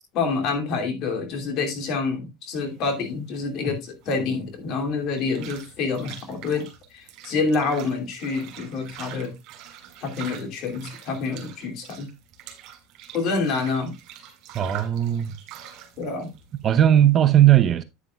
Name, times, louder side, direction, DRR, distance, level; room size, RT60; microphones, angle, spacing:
voice 1, 0.1-9.3 10.0-12.1 13.1-13.9 16.0-16.3, left 4 dB, 55° left, 2.7 m, -27 dB
sound 1, 2.5-17.3, right 10 dB, 55° right, 3.2 m, -44 dB
voice 2, 14.5-15.3 16.6-17.8, right 11 dB, 35° right, 0.8 m, -17 dB
9.7 x 9.2 x 2.3 m
supercardioid pair, 120°, 0 cm